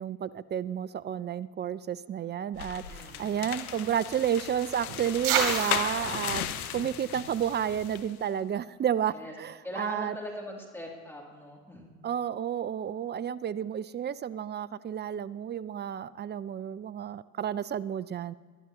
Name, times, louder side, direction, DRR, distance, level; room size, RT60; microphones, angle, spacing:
voice 1, 0.0-10.2 12.0-18.3, right 9 dB, 25° right, 19 dB, 0.4 m, -31 dB
sound 1, 2.5-8.1, left 10 dB, 85° left, 0.8 m, -36 dB
voice 2, 2.8-3.5 9.1-9.3 9.6-11.9, left 1 dB, 5° left, -2 dB, 2.9 m, -41 dB
sound 2, 2.9-8.0, right 6 dB, 65° right, 3.3 m, -35 dB
21.5 x 11.5 x 3.0 m, 1.5 s
hypercardioid pair, 65°, 42 cm